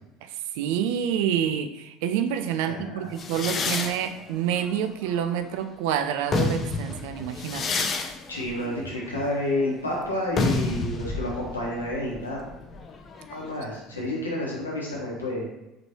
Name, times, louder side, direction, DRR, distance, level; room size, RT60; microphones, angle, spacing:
voice 1, 0.5-7.6, right 9 dB, 60° right, 9 dB, 0.3 m, -27 dB
voice 2, 2.6-3.1 8.3-12.4 13.3-15.4, left 1 dB, 80° left, -4 dB, 1.1 m, -30 dB
sound 1, 3.2-5.7 6.1-13.6, left 3 dB, 35° left, 0.5 m, -30 dB
5.0 x 3.1 x 2.8 m, 0.96 s
figure-of-eight pair, 65°, 0 cm